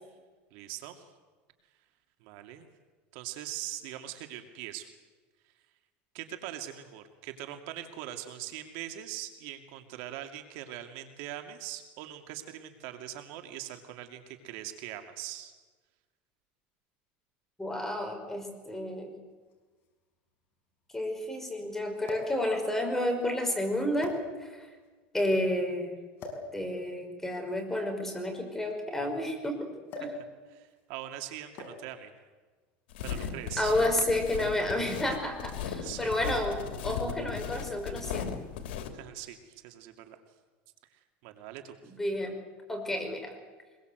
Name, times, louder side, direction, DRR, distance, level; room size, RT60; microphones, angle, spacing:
voice 1, 0.5-1.1 2.2-2.7 3.1-4.9 6.1-15.5 30.5-32.1 33.0-33.7 35.8-36.1 38.9-40.2 41.2-41.8, right 12 dB, 65° right, 6 dB, 2.5 m, -42 dB
voice 2, 17.6-19.2 20.9-24.1 24.4-24.7 25.1-26.0 26.5-29.7 33.6-38.4 42.0-42.4 42.7-43.3, left 1 dB, 5° left, 3 dB, 5.1 m, -31 dB
sound 1, 18.3-18.4 19.5-19.6 19.8-19.9 22.0-22.4 23.3-23.4 24.0-24.7 26.2-26.5 27.6-29.3 29.9-30.3 30.5-30.8 31.6-31.9 32.9-33.2, left 2 dB, 40° left, 6.1 m, -42 dB
sound 2, 32.9-38.9, left 7 dB, 90° left, 2.9 m, -37 dB
24.0 x 22.0 x 8.0 m, 1.4 s
supercardioid pair, 140°, 6 cm